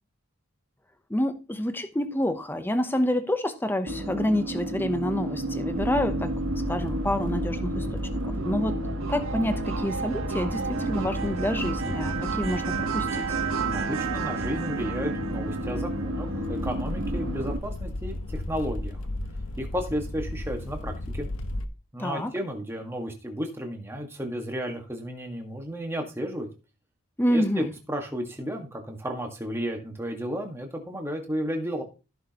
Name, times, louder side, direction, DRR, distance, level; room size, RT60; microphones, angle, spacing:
voice 1, 1.1-6.3 6.7-7.9 8.1-8.7 9.1-13.2 22.0-22.3 27.2-27.7, left 1 dB, 10° left, 0.8 m, -28 dB
sound 1, 3.9-17.6, right 3 dB, 75° right, 1.3 m, -31 dB
sound 2, 5.7-21.6, left 1 dB, 80° left, 1.0 m, -35 dB
voice 2, 13.6-19.0 19.6-21.3 21.9-26.5 27.3-31.8, equal, 10° right, 1.7 m, -33 dB
14.5 x 6.3 x 3.0 m
head